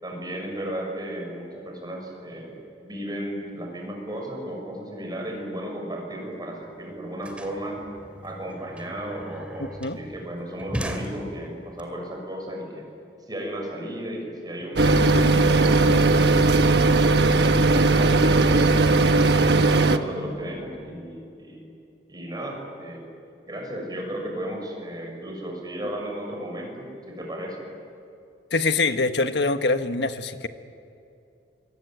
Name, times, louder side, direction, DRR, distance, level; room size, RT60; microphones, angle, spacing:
voice 1, 0.0-7.8 8.2-12.9 13.3-19.0 19.5-21.7 22.1-23.1 23.5-27.6, right 1 dB, 25° right, 1 dB, 6.6 m, -35 dB
sound 1, 6.3-6.4 6.6-11.8, equal, 5° right, 2.5 m, -38 dB
sound 2, 14.8-20.0, right 3 dB, 70° right, 1.2 m, -18 dB
voice 2, 28.5-30.5, left 3 dB, 75° left, 8 dB, 1.3 m, -24 dB
26.0 x 23.5 x 9.3 m, 2.6 s
head